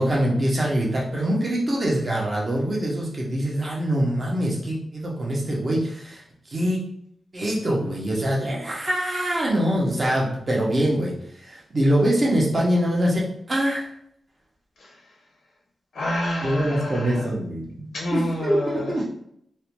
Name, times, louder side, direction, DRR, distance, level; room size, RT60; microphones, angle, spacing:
voice 1, 0.0-6.2 6.5-6.8 7.3-11.1 11.4-13.9 16.4-19.0, equal, 30° right, -3 dB, 0.6 m, -24 dB
voice 2, 15.9-17.3 17.9-19.0, left 1 dB, 65° left, -3 dB, 0.4 m, -28 dB
2.4 x 2.1 x 2.9 m, 0.71 s
wide cardioid pair, 175°, 0 cm